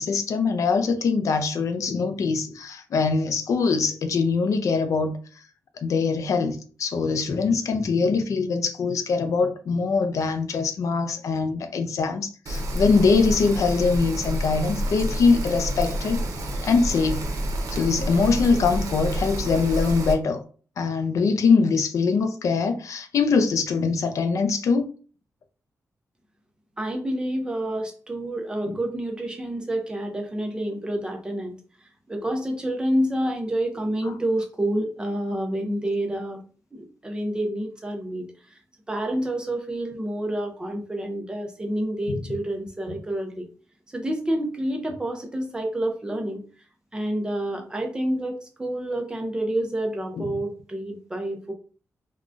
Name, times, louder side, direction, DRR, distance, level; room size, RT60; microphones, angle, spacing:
voice 1, 0.0-5.2 5.8-16.3 16.6-17.3 17.7-20.4 20.8-24.9 28.6-28.8 42.1-42.2, left 4 dB, 70° left, 0.4 m, -23 dB
Rain, 12.5-20.1, equal, 90° right, 0.6 m, -29 dB
voice 2, 26.8-31.6 32.1-36.4 36.7-38.6 38.9-43.5 43.9-46.4 46.9-51.5, right 1 dB, 15° right, 0.5 m, -28 dB
3.6 x 2.2 x 2.4 m
wide cardioid pair, 175°, 6 cm